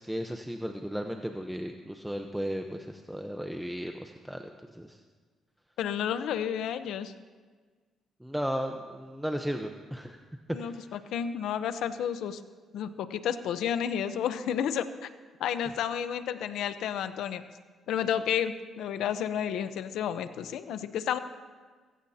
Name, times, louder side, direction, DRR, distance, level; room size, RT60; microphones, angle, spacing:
voice 1, 0.0-4.4 4.7-5.0 8.2-10.2 10.6-10.8, equal, 5° right, 4 dB, 0.9 m, -35 dB
voice 2, 5.8-7.1 10.5-12.4 12.7-15.1 15.4-17.4 17.9-21.2, left 9 dB, 80° left, 11 dB, 0.8 m, -31 dB
23.0 x 15.5 x 2.9 m, 1.5 s
cardioid pair, 90°, 0 cm